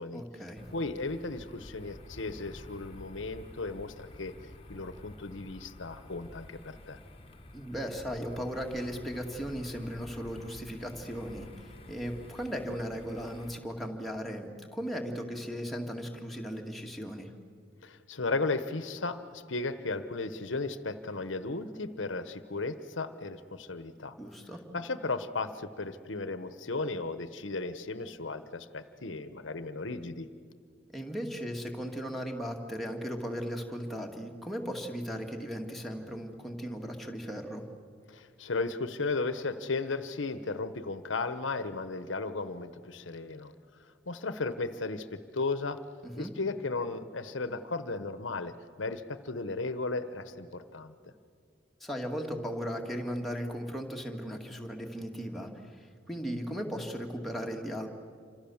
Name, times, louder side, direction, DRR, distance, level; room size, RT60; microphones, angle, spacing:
voice 1, 0.1-0.6 7.5-17.3 24.2-24.6 30.9-37.6 46.0-46.3 51.8-57.9, equal, ahead, 0 dB, 2.2 m, -37 dB
sound 1, 0.6-13.6, left 1 dB, 30° left, 1.4 m, -50 dB
voice 2, 0.7-4.3 4.7-7.0 17.8-24.1 24.7-30.3 38.1-43.5 44.1-45.8 46.2-48.5 48.8-50.9, left 3 dB, 80° left, 12 dB, 1.1 m, -35 dB
28.0 x 26.0 x 7.2 m, 2.2 s
head